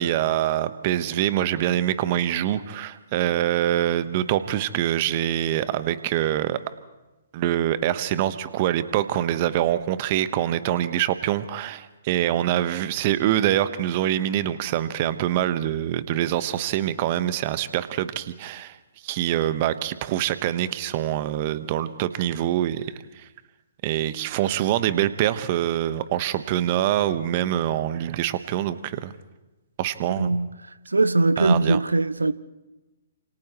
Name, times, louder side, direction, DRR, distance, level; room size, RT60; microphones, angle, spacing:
voice 1, 0.0-6.6 7.3-18.8 19.0-23.2 23.8-29.1 29.8-30.4 31.4-31.8, right 12 dB, 35° right, 1.2 m, -25 dB
voice 2, 30.1-30.5 30.9-32.3, right 2 dB, 80° right, 0.7 m, -21 dB
30.0 x 27.5 x 3.1 m
figure-of-eight pair, 125°, 0 cm